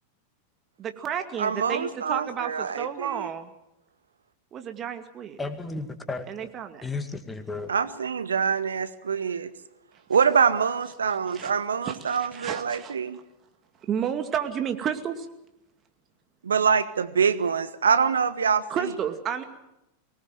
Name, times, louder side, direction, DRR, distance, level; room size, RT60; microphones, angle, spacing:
voice 1, 0.8-3.5 4.5-5.4 6.3-6.8 11.3-11.5 11.8-13.0 13.9-15.3 18.7-19.4, right 8 dB, 30° right, 6 dB, 2.3 m, -31 dB
voice 2, 1.4-3.3 7.7-9.5 10.1-13.2 16.4-18.9, right 6 dB, 70° right, 14 dB, 0.9 m, -25 dB
voice 3, 5.4-6.5 6.8-7.7, left 3 dB, 10° left, 8 dB, 2.1 m, -34 dB
24.0 x 19.0 x 7.7 m, 0.89 s
figure-of-eight pair, 90°, 0 cm